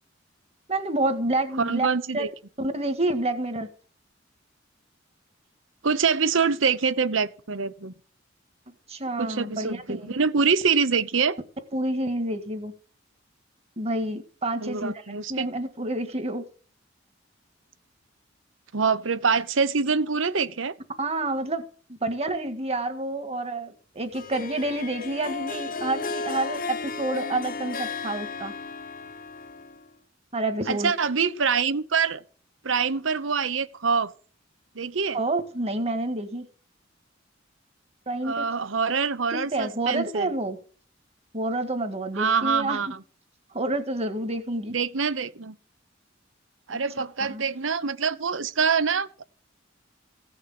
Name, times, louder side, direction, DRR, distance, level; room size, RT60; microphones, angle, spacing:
voice 1, 0.7-1.9 2.1-2.3 2.6-3.7 8.9-10.1 11.7-12.7 13.8-15.0 15.3-16.4 21.0-21.6 21.9-28.5 30.3-30.9 35.1-36.5 38.1-38.5 39.3-40.6 41.3-42.8 43.5-44.7 47.3-47.4, right 2 dB, 35° right, 1.8 m, -28 dB
voice 2, 1.6-2.3 5.8-7.9 9.2-11.4 14.6-15.5 18.7-20.7 30.7-32.2 32.6-34.1 34.7-35.2 38.2-40.3 42.1-42.9 44.7-45.6 46.7-49.2, right 5 dB, 80° right, 0.9 m, -25 dB
Harp, 24.1-29.9, left 4 dB, 45° left, 0.9 m, -34 dB
16.0 x 6.5 x 7.7 m
head